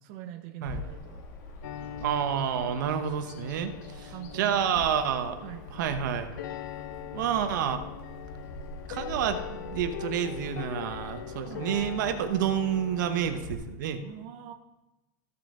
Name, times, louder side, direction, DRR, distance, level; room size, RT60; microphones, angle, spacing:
voice 1, 0.0-1.2 4.1-4.8 5.4-5.6 11.4-11.7 14.0-14.5, right 11 dB, 45° right, 5 dB, 0.7 m, -43 dB
Bird vocalization bird call bird song, 0.6-13.5, left 1 dB, 70° left, 2.3 m, -44 dB
sound 1, 1.6-13.3, left 11 dB, 85° left, 0.6 m, -41 dB
voice 2, 2.0-5.4 5.7-6.3 7.1-7.8 8.9-14.0, right 8 dB, 80° right, 8 dB, 1.1 m, -29 dB
15.0 x 5.8 x 3.8 m, 1.0 s
supercardioid pair, 170°, 10 cm